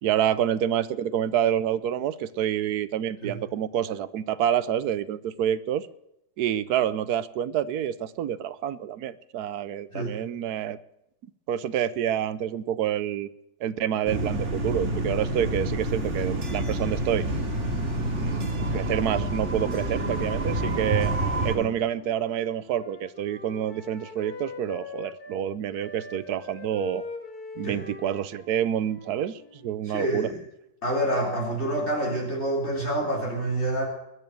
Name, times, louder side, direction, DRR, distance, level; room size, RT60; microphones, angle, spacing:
voice 1, 0.0-5.9 6.4-10.8 11.5-13.3 13.6-17.3 18.1-21.1 21.4-27.0 27.6-30.3, right 10 dB, 70° right, 16 dB, 1.2 m, -28 dB
sound 1, 14.1-21.5, right 1 dB, 45° right, 2.6 m, -28 dB
Wind instrument woodwind instrument, 21.7-25.4 25.7-29.8, left 3 dB, 60° left, 2.5 m, -42 dB
voice 2, 29.9-30.4 30.8-33.9, right 1 dB, 40° left, -3 dB, 3.9 m, -27 dB
21.0 x 7.1 x 7.7 m, 0.84 s
omnidirectional pair, 1.8 m